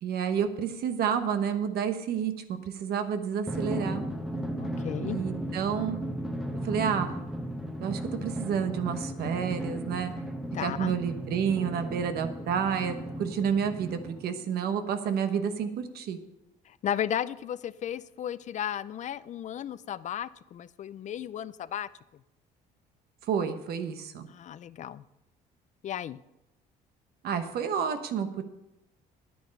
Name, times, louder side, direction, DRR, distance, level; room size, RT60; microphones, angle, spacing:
voice 1, 0.0-4.1 5.0-6.0 6.6-7.2 7.8-10.1 10.6-12.9 13.2-16.2 23.3-24.3 27.2-28.4, right 7 dB, 65° right, 8 dB, 1.1 m, -30 dB
Drum, 3.5-14.5, right 1 dB, ahead, 1.0 m, -35 dB
voice 2, 4.6-5.2 10.5-10.9 16.7-22.2 24.3-25.0 25.8-26.2, left 10 dB, 45° left, 17 dB, 0.4 m, -34 dB
9.6 x 9.3 x 5.4 m, 0.92 s
cardioid pair, 110°, 17 cm